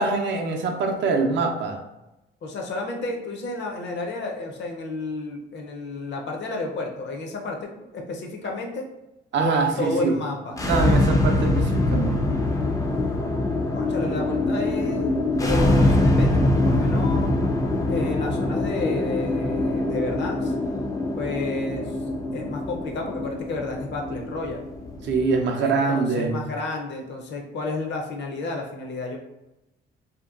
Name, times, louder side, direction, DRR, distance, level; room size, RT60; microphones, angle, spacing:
voice 1, 0.0-1.8 9.3-10.1 10.6-12.2 25.0-26.4, right 4 dB, 65° right, 3 dB, 0.5 m, -24 dB
voice 2, 2.4-8.8 9.4-10.5 13.7-17.3 17.9-20.5 21.1-21.9 22.3-24.7 25.6-29.2, left 3 dB, 65° left, 2 dB, 0.6 m, -31 dB
sound 1, 10.5-25.5, left 2 dB, 15° left, 0.3 m, -23 dB
2.8 x 2.2 x 2.4 m, 0.94 s
cardioid pair, 90°, 20 cm